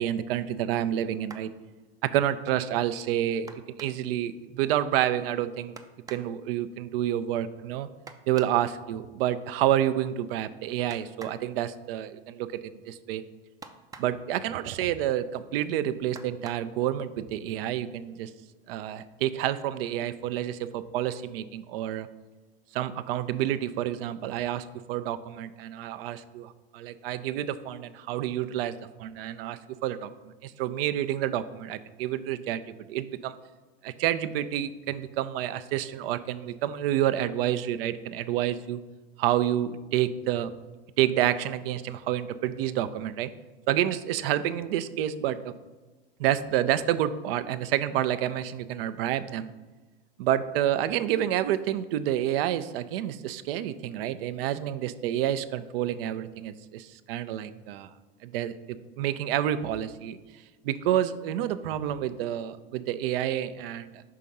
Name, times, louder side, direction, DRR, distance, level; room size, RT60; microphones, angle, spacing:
voice 1, 0.0-1.5 2.0-5.7 6.1-7.9 8.3-12.5 12.9-13.2 14.0-18.3 18.7-22.1 22.7-30.1 30.4-32.6 32.9-33.3 33.8-38.8 39.2-40.5 41.0-43.3 43.7-45.5 46.2-49.5 50.2-57.9 58.2-60.2 60.6-63.9, right 11 dB, 70° right, 13 dB, 0.5 m, -29 dB
sound 1, 1.3-1.6 3.5-4.2 5.8-6.3 8.1-8.6 10.9-11.5 13.6-14.3 16.1-16.7 17.8-17.9 18.4-18.6, right 4 dB, 10° right, 0.4 m, -47 dB
5.7 x 3.7 x 5.3 m, 1.2 s
hypercardioid pair, 100°, 30 cm